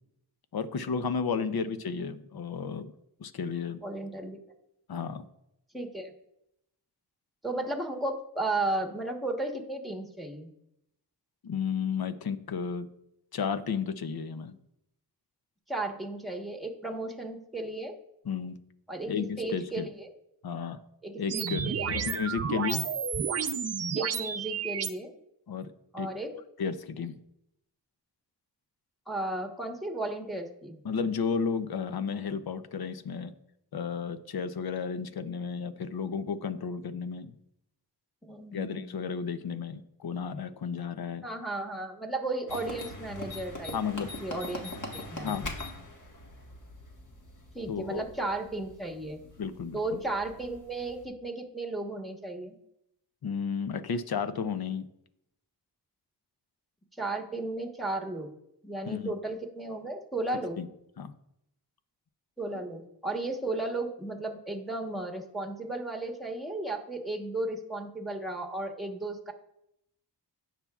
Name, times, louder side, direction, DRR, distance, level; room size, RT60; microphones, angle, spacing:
voice 1, 0.5-2.9 3.2-3.8 4.9-5.3 11.4-12.9 13.3-14.6 18.2-18.6 19.1-19.9 20.4-20.8 21.2-22.8 25.5-25.7 26.0-26.1 26.6-27.2 30.8-33.3 33.7-37.3 38.5-41.3 43.7-44.1 45.2-45.6 47.7-48.0 49.4-50.0 53.2-54.9 58.9-59.1 60.6-60.7 61.0-61.1, left 6 dB, 60° left, 12 dB, 0.7 m, -33 dB
voice 2, 3.8-4.4 5.7-6.1 7.4-10.5 15.7-17.9 18.9-20.1 21.0-22.0 24.0-25.1 25.9-26.3 29.1-30.8 38.3-39.0 41.2-43.7 44.2-45.3 47.5-49.2 49.7-52.6 57.0-58.3 58.6-60.6 62.4-69.3, right 2 dB, ahead, 3 dB, 1.2 m, -34 dB
sound 1, 21.3-24.9, right 7 dB, 40° right, 0.5 m, -31 dB
sound 2, 42.5-51.0, left 2 dB, 45° left, 1.6 m, -42 dB
17.0 x 5.8 x 2.4 m, 0.82 s
wide cardioid pair, 80°, 41 cm